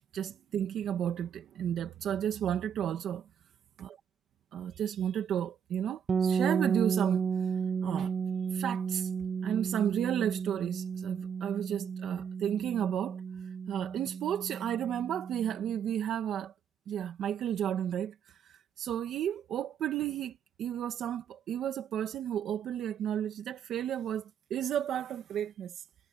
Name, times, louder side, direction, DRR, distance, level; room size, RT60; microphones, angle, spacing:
voice 1, 0.0-3.3 3.8-4.0 4.5-7.5 7.8-8.1 8.5-9.1 9.4-13.2 13.7-16.5 16.9-25.8, right 10 dB, 75° right, 2.0 m, -33 dB
sound 1, 6.1-15.8, right 6 dB, 40° right, 0.7 m, -33 dB
cardioid pair, 90°, 0 cm